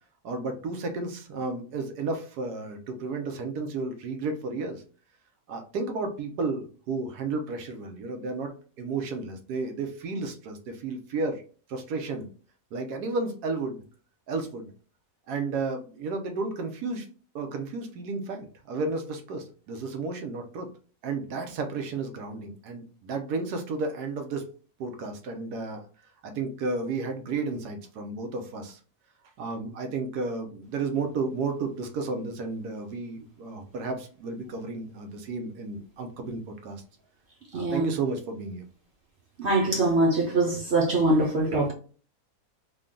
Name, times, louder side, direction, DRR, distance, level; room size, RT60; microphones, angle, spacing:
voice 1, 0.2-4.8 5.5-8.5 8.8-11.4 11.7-12.3 12.7-13.8 14.3-14.7 15.3-17.1 17.3-20.7 21.0-24.4 24.8-25.8 26.2-28.8 29.4-36.8 37.5-38.6, right 3 dB, 90° right, 1.3 m, -32 dB
voice 2, 37.5-37.9 39.4-41.7, right 2 dB, 55° right, 0.9 m, -23 dB
3.8 x 2.3 x 3.6 m
omnidirectional pair, 1.6 m